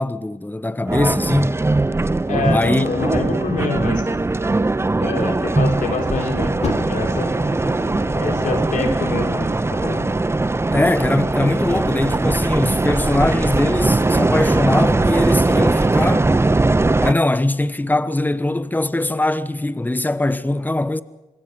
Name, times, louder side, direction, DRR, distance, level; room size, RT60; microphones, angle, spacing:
voice 1, 0.0-1.6 2.5-2.8 10.7-16.3 17.0-21.0, left 2 dB, 15° left, 1.1 m, -21 dB
sound 1, 0.9-17.1, right 2 dB, 20° right, 0.7 m, -20 dB
voice 2, 2.3-4.0 5.0-7.3 8.2-9.5 9.8-10.1, left 4 dB, 70° left, 4.0 m, -25 dB
Fire, 6.6-9.4 10.3-10.4, left 3 dB, 50° left, 3.5 m, -32 dB
26.5 x 21.0 x 5.3 m
supercardioid pair, 50°, 14 cm